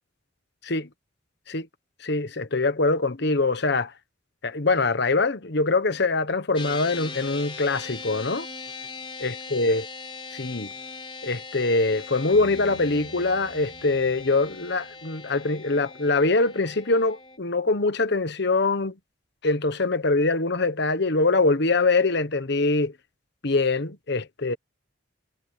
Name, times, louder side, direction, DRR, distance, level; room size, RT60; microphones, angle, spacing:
voice 1, 2.0-3.9 4.4-8.5 9.2-9.9 10.3-10.7 11.2-18.9 19.4-22.9 23.4-24.6, left 3 dB, 60° left, 1.3 m, -23 dB
sound 1, 6.5-17.4, left 4 dB, 30° left, 4.5 m, -40 dB
Piano, 12.3-16.0, equal, 70° right, 4.9 m, -49 dB
head